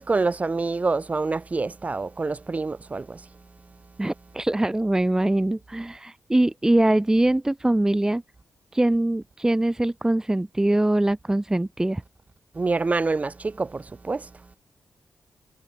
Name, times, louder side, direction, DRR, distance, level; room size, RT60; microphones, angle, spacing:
voice 1, 0.0-3.2 12.6-14.3, right 3 dB, 35° right, 2.3 m, -26 dB
voice 2, 4.0-8.2 8.7-12.0, right 1 dB, 15° right, 1.4 m, -22 dB
cardioid pair, 80°, 4 cm